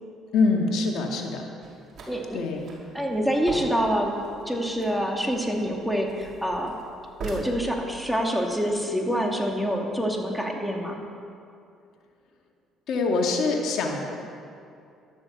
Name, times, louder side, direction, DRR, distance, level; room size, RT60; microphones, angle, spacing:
voice 1, 0.3-1.4 2.3-2.7 12.9-14.1, left 3 dB, 70° left, 1 dB, 2.1 m, -24 dB
sound 1, 1.6-7.4, right 4 dB, 55° right, 4.8 m, -43 dB
voice 2, 2.1-2.4 2.9-4.1 4.5-6.7 7.2-11.0, equal, ahead, 0 dB, 2.5 m, -26 dB
12.5 x 12.0 x 7.3 m, 2.5 s
supercardioid pair, 80°, 0 cm